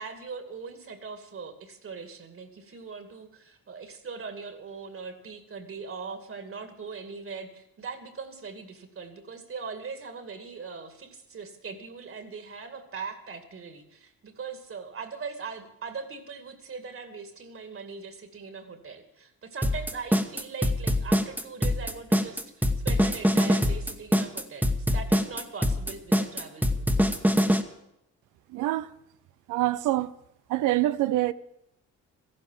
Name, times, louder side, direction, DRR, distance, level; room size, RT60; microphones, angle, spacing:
voice 1, 0.0-26.9, right 5 dB, 45° right, 2.4 m, -40 dB
sound 1, 19.6-27.6, equal, 5° right, 1.3 m, -23 dB
voice 2, 28.5-28.9 29.5-30.1 30.5-31.3, right 15 dB, 90° right, 0.6 m, -25 dB
14.0 x 12.0 x 7.4 m
cardioid pair, 90°, 30 cm